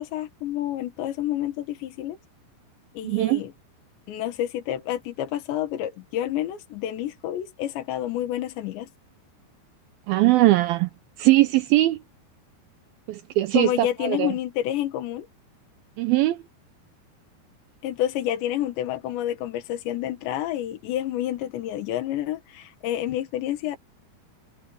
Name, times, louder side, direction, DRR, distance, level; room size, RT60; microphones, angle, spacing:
voice 1, 0.0-2.2 3.0-3.5 4.1-8.9 13.5-15.3 17.8-23.8, left 12 dB, 80° left, 3.9 m, -29 dB
voice 2, 3.0-3.4 10.1-10.9 11.2-12.0 13.1-14.3 16.0-16.4, right 17 dB, 90° right, 2.1 m, -20 dB
omnidirectional pair, 5.0 m